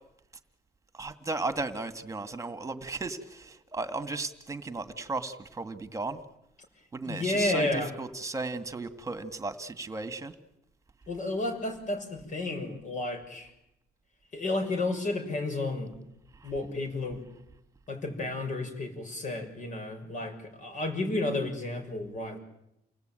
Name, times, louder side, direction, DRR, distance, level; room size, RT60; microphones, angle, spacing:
voice 1, 0.9-6.2 6.9-10.3 16.4-16.5, right 3 dB, 20° right, 9 dB, 2.0 m, -35 dB
voice 2, 7.0-7.9 11.1-13.5 14.3-15.9 16.4-17.2 17.9-22.4, left 2 dB, 45° left, 6 dB, 6.5 m, -32 dB
29.5 x 19.5 x 9.1 m, 0.83 s
cardioid pair, 110°, 17 cm